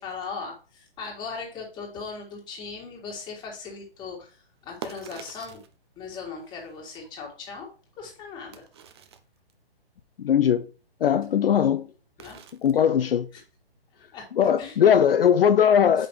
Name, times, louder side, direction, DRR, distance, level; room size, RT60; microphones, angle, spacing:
voice 1, 0.0-5.6 6.0-7.7 8.0-8.6 12.2-12.4 14.1-14.2 14.6-14.8 16.0-16.1, left 5 dB, 15° left, 1.9 m, -38 dB
sound 1, 1.9-2.2 4.4-5.7 6.2-7.7 8.1-8.2 8.5-9.5 12.2-12.8 13.1-13.2, right 7 dB, 25° right, 0.5 m, -45 dB
voice 2, 10.2-10.7 11.0-11.9 12.6-13.3 14.4-16.1, left 8 dB, 65° left, 0.6 m, -19 dB
8.5 x 5.2 x 3.1 m
hypercardioid pair, 150°, 31 cm